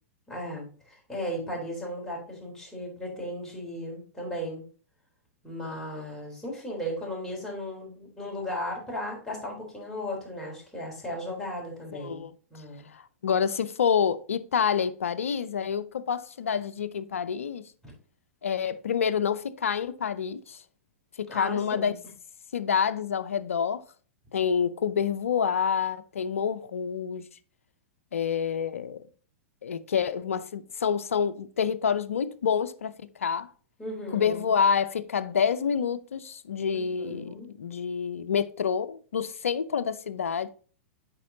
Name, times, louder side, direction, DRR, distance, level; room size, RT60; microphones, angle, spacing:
voice 1, 0.3-4.6 5.4-12.2 12.5-12.9 21.3-22.0 33.8-34.6 37.0-37.5, equal, 5° left, 3.6 m, -36 dB
voice 2, 12.0-12.3 12.9-17.6 18.4-20.6 21.2-21.9 22.5-23.8 24.3-27.3 28.1-29.0 29.6-32.9 33.2-33.5 34.1-40.5, left 7 dB, 75° left, 0.5 m, -27 dB
8.3 x 5.3 x 2.8 m
figure-of-eight pair, 100°, 7 cm